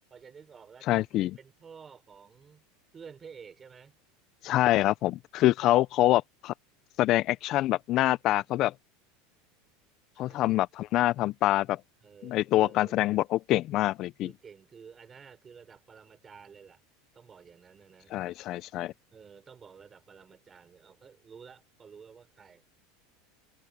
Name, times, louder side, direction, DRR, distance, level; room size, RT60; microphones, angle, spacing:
voice 1, 0.1-2.6 2.9-4.0 5.7-5.8 10.1-10.4 12.0-13.0 14.2-16.8 17.1-18.2 19.1-22.6, right 6 dB, 25° right, 4.3 m, -51 dB
voice 2, 0.9-1.3 4.4-6.5 7.0-8.7 10.2-11.8 12.2-14.3 18.1-18.9, left 15 dB, 50° left, 0.4 m, -25 dB
supercardioid pair, 115°, 0 cm